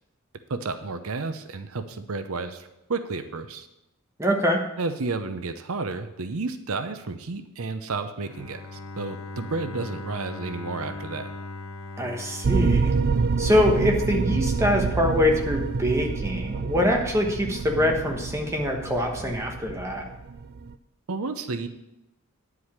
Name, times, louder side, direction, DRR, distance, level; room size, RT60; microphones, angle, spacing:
voice 1, 0.5-3.7 4.8-11.3 21.1-21.7, right 3 dB, 70° right, 9 dB, 0.7 m, -31 dB
voice 2, 4.2-4.6 12.0-12.9 13.4-20.0, left 1 dB, 15° right, 1 dB, 1.2 m, -24 dB
Bowed string instrument, 8.2-14.1, left 2 dB, 70° left, 1.0 m, -39 dB
sound 1, 12.4-20.7, right 4 dB, 45° right, 0.4 m, -27 dB
10.0 x 4.8 x 7.2 m, 0.90 s
head